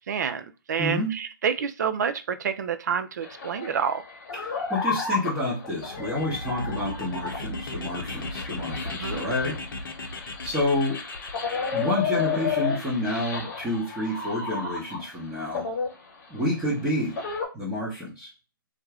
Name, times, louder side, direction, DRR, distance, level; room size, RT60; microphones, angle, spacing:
voice 1, 0.1-4.0 9.0-9.2, right 7 dB, 50° right, 10 dB, 0.4 m, -28 dB
voice 2, 0.8-1.2 4.3-9.6 10.4-11.0 11.7-15.7 16.3-17.2 17.5-18.3, left 1 dB, 10° right, -8 dB, 0.9 m, -29 dB
sound 1, 3.2-15.2 15.5-17.5, left 5 dB, 40° left, 1.0 m, -32 dB
sound 2, 5.8-11.8, left 2 dB, 65° left, 0.7 m, -36 dB
2.4 x 2.2 x 3.3 m, 0.30 s
figure-of-eight pair, 140°, 12 cm